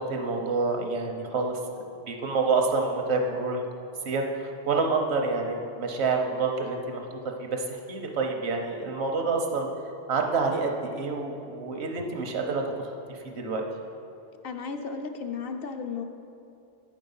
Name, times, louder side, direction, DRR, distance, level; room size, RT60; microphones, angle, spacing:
voice 1, 0.0-1.6 2.1-3.6 4.0-7.1 7.4-9.7 10.1-12.9 13.2-13.6, right 4 dB, 80° right, 3 dB, 1.1 m, -28 dB
voice 2, 14.4-16.0, left 5 dB, 65° left, 6 dB, 0.8 m, -34 dB
8.8 x 5.2 x 5.5 m, 2.6 s
omnidirectional pair, 1.1 m